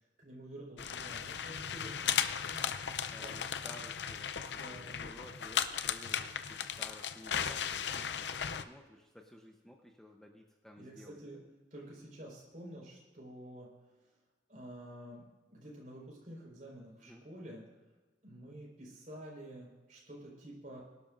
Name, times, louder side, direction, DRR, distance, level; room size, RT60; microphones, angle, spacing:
voice 1, 0.2-2.7 3.2-3.4 4.5-5.2 10.8-11.4 11.7-13.7 14.5-15.2 15.5-17.6 18.2-20.8, right 1 dB, 45° right, -3 dB, 4.7 m, -49 dB
sound 1, 0.8-8.6, left 8 dB, 80° left, 0.6 m, -36 dB
voice 2, 3.1-11.2 17.0-17.2, equal, 5° left, 1 dB, 0.8 m, -54 dB
23.0 x 12.0 x 2.6 m, 1.2 s
head